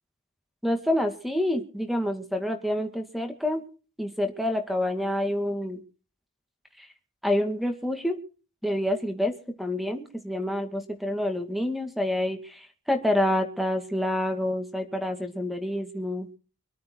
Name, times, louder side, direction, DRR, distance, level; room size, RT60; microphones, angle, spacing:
voice 1, 0.6-3.6 4.0-5.8 6.8-6.9 7.2-8.2 8.6-16.3, left 1 dB, ahead, 6 dB, 2.2 m, -28 dB
25.5 x 9.4 x 4.7 m, 0.37 s
head